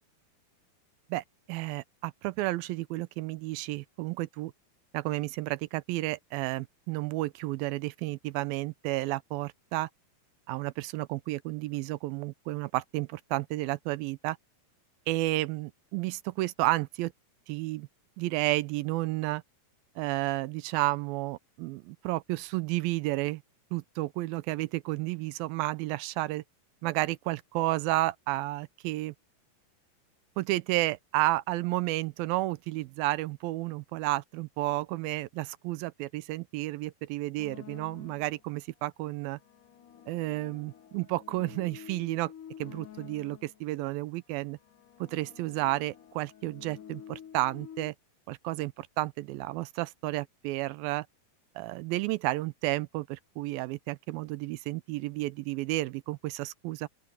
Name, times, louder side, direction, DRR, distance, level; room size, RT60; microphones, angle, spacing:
voice 1, 1.1-4.5 4.9-9.9 10.5-14.4 15.1-17.1 17.5-17.9 18.2-19.4 20.0-23.4 23.7-26.4 26.8-29.1 30.4-39.4 40.1-42.3 42.6-44.6 45.0-48.0 48.3-51.1 51.6-56.9, right 18 dB, 80° right, 2.5 m, -32 dB
sound 1, 37.4-38.5 39.2-43.7 44.5-47.9, left 9 dB, 65° left, 3.1 m, -49 dB
open air
omnidirectional pair, 4.2 m